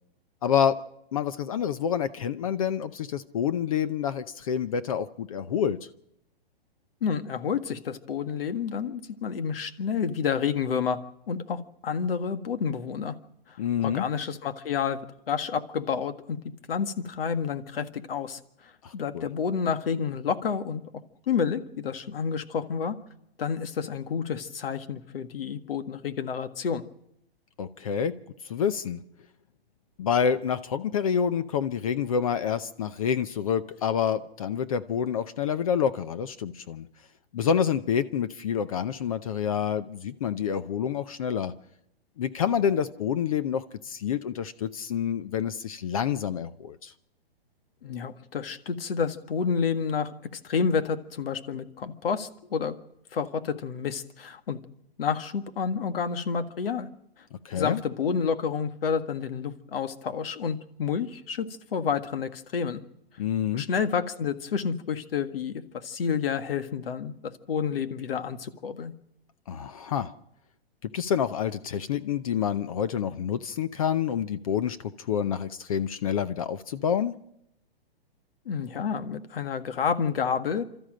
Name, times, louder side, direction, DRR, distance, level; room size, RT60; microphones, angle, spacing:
voice 1, 0.4-0.8 1.1-5.8 13.6-14.1 18.8-19.3 27.6-28.1 28.4-29.0 30.0-36.9 37.3-41.5 42.2-46.9 57.3-57.8 63.2-63.6 69.5-70.1 70.9-77.1, left 8 dB, 35° left, 12 dB, 0.7 m, -28 dB
voice 2, 7.0-11.0 11.3-13.1 13.5-15.0 15.3-16.4 16.7-20.8 21.3-23.0 23.4-26.8 47.8-50.1 50.4-52.8 53.1-54.6 55.0-56.9 57.5-62.8 63.5-68.9 78.5-80.7, left 6 dB, 65° left, 9 dB, 1.7 m, -29 dB
28.0 x 13.5 x 7.6 m, 0.81 s
hypercardioid pair, 165°, 31 cm